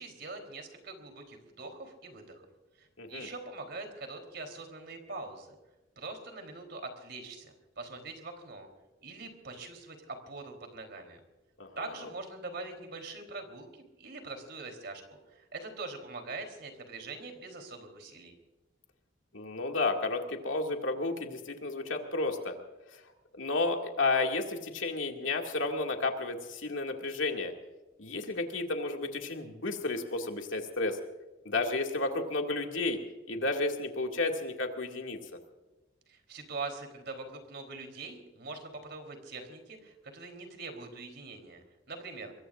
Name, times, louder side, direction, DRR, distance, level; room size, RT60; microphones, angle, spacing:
voice 1, 0.0-2.4 2.8-5.5 6.0-8.7 9.0-11.2 11.8-15.0 15.3-18.3 36.1-42.3, right 3 dB, 60° right, 5 dB, 3.7 m, -43 dB
voice 2, 3.0-3.3 11.6-11.9 19.3-22.6 22.9-23.0 23.4-27.5 28.0-31.0 31.4-33.0 33.3-35.2, left 3 dB, 90° left, 2 dB, 2.3 m, -32 dB
24.5 x 22.0 x 2.6 m, 1.1 s
head